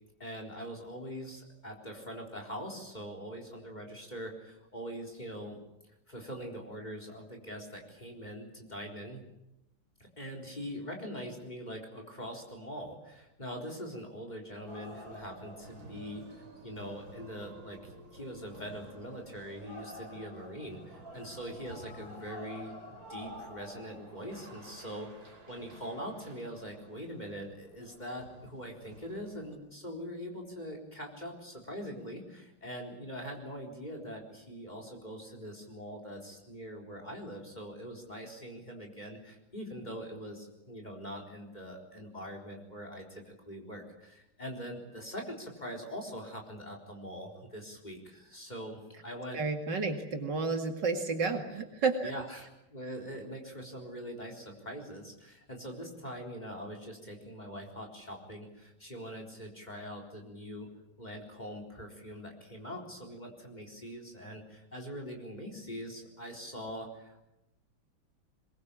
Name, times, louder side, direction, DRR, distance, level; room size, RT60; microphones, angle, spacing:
voice 1, 0.2-5.6 6.1-9.2 10.2-49.4 52.0-60.7 61.0-67.2, equal, 20° left, 2 dB, 4.2 m, -43 dB
sound 1, 14.7-29.6, right 1 dB, 45° right, 4.7 m, -50 dB
voice 2, 49.3-52.1, right 4 dB, 60° right, 5 dB, 2.9 m, -31 dB
22.5 x 22.0 x 8.7 m, 0.88 s
omnidirectional pair, 2.1 m